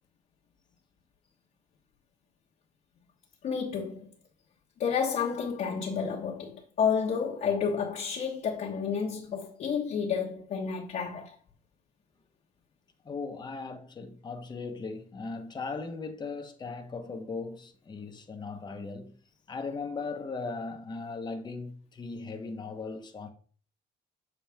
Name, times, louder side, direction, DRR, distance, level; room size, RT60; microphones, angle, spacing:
voice 1, 3.4-4.1 4.8-11.3, left 6 dB, 50° left, 1.2 m, -30 dB
voice 2, 13.0-19.2 19.5-23.3, left 4 dB, 25° left, 1.0 m, -38 dB
7.3 x 4.1 x 3.5 m
cardioid pair, 110°, 17 cm